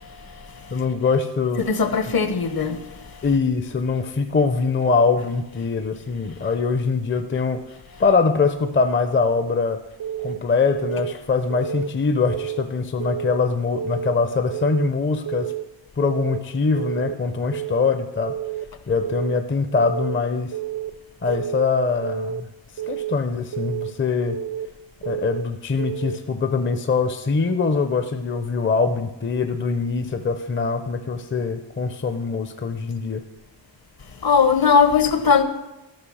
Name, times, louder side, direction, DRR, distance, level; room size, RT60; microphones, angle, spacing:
voice 1, 0.7-1.6 3.2-7.6 8.0-9.8 10.2-15.5 16.0-18.4 18.9-20.6 21.2-22.5 22.9-24.4 25.1-33.2, left 4 dB, 25° left, 0.6 m, -23 dB
voice 2, 1.6-2.8 34.2-35.4, left 5 dB, 50° left, 0.9 m, -18 dB
Keyboard (musical) / Alarm, 10.0-10.4 10.7-11.1 11.5-11.9 12.2-12.6 13.0-13.4 13.8-14.1 14.5-14.9 15.3-15.6 16.0-16.4 16.8-17.1 17.5-17.9 18.3-18.6 19.0-19.4 19.8-20.1 20.5-20.9 21.3-21.7 22.0-22.4 22.8-23.2 23.5-23.9 24.3-24.7 25.0-25.4 25.8-26.2, right 8 dB, 85° right, 0.7 m, -29 dB
13.5 x 5.8 x 6.2 m
wide cardioid pair, 145°, 45 cm